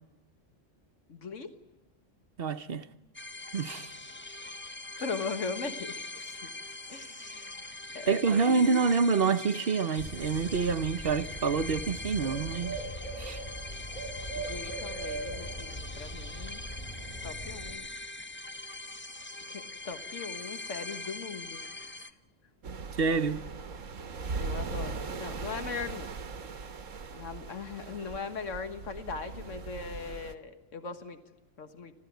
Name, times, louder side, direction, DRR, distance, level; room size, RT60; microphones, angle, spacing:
voice 1, 1.1-1.5 5.0-6.5 6.9-8.7 14.3-16.6 17.2-17.9 19.5-21.6 22.1-22.2 24.4-26.1 27.1-31.2 31.6-31.9, left 4 dB, 75° left, 1.8 m, -39 dB
voice 2, 2.4-2.9 3.5-3.9 8.1-12.8 13.2-13.4 22.9-23.4, right 5 dB, 50° right, 1.1 m, -27 dB
sound 1, 3.1-22.1, left 3 dB, 10° left, 0.7 m, -42 dB
Bird, 10.0-17.7, right 1 dB, 45° left, 6.5 m, -40 dB
sound 2, 22.6-30.3, right 4 dB, 85° right, 1.6 m, -39 dB
29.5 x 13.0 x 9.3 m
omnidirectional pair, 1.3 m